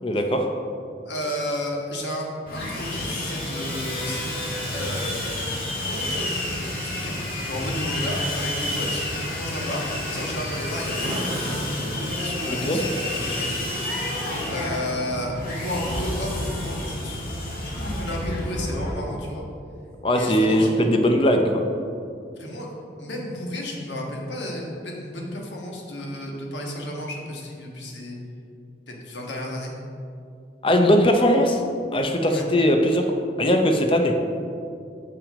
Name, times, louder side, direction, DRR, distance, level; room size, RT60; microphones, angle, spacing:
voice 1, 0.0-0.5 12.6-12.8 20.0-21.6 30.6-31.6 31.9-33.1 33.4-34.2, equal, 30° left, 4 dB, 0.6 m, -19 dB
voice 2, 1.0-4.3 4.7-5.6 5.9-7.1 7.4-9.0 9.4-11.9 12.2-17.2 17.6-19.4 20.1-20.7 22.3-28.2 28.9-29.7 32.2-32.5, left 1 dB, 85° left, -1 dB, 1.4 m, -33 dB
Sawing, 2.5-18.9, left 1 dB, 50° left, 1.8 m, -29 dB
7.0 x 6.0 x 4.9 m, 2.5 s
head